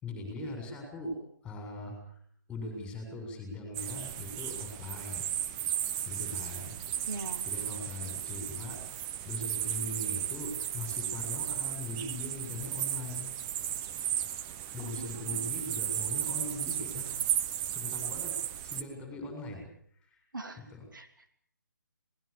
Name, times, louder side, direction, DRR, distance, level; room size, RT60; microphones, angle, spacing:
voice 1, 0.0-2.2 2.5-5.2 6.1-6.8 7.4-8.8 9.2-13.3 14.7-17.1 17.7-19.7 20.0-20.2 20.6-20.9, left 2 dB, 10° left, 3 dB, 7.0 m, -40 dB
sound 1, 3.7-18.8, right 10 dB, 20° right, 1.0 m, -35 dB
voice 2, 7.1-7.4 14.8-15.5 20.3-20.6 20.9-21.3, right 3 dB, 70° right, 6 dB, 3.0 m, -42 dB
26.0 x 20.0 x 7.0 m, 0.63 s
figure-of-eight pair, 140°, 11 cm